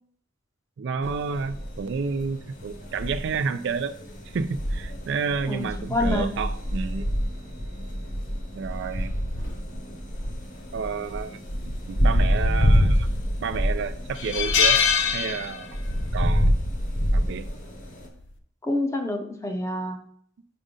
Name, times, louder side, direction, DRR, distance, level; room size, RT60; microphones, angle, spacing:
voice 1, 0.8-4.0 4.2-7.1 8.5-9.1 10.7-13.1 13.4-14.8 15.1-15.8 16.1-16.5 17.1-17.5, right 5 dB, 60° right, 11 dB, 0.3 m, -30 dB
sound 1, 1.0-18.1, equal, 40° left, 1.0 m, -27 dB
voice 2, 5.5-6.3 18.6-20.0, left 1 dB, 15° left, 5 dB, 0.6 m, -27 dB
sound 2, 12.7-13.3 13.7-13.8 14.2-16.0 16.2-16.5 17.7-18.0, left 7 dB, 60° left, 0.7 m, -23 dB
5.2 x 5.1 x 3.7 m, 0.63 s
head